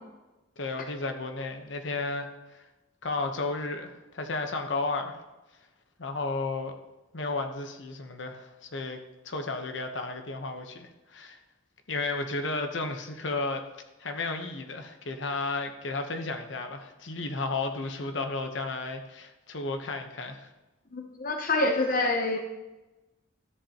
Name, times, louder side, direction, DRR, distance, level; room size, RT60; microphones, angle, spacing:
voice 1, 0.6-2.6 3.0-5.2 6.0-6.7 7.1-9.0 9.2-11.4 11.9-13.6 14.0-20.5, left 3 dB, 70° left, 5 dB, 1.0 m, -33 dB
voice 2, 20.9-22.4, left 2 dB, 45° left, 3 dB, 0.8 m, -26 dB
13.5 x 7.8 x 2.9 m, 1.1 s
head